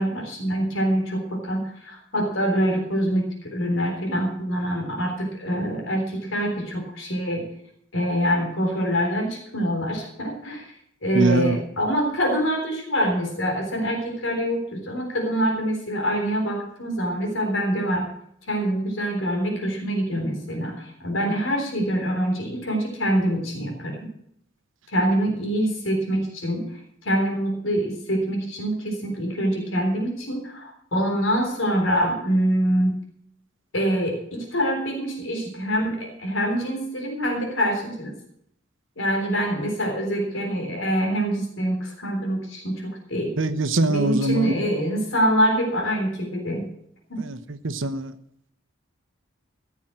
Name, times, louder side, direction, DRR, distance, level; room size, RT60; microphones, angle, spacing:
voice 1, 0.0-7.5 7.9-10.7 11.0-18.1 18.5-24.0 24.9-26.7 27.0-33.0 33.7-38.1 39.0-43.3 43.9-46.6 47.1-47.2, equal, 85° left, 1 dB, 3.7 m, -25 dB
voice 2, 11.1-11.6 43.4-44.5 47.2-47.4 47.6-48.1, right 2 dB, 80° right, 12 dB, 1.0 m, -22 dB
15.0 x 7.3 x 7.6 m, 0.71 s
head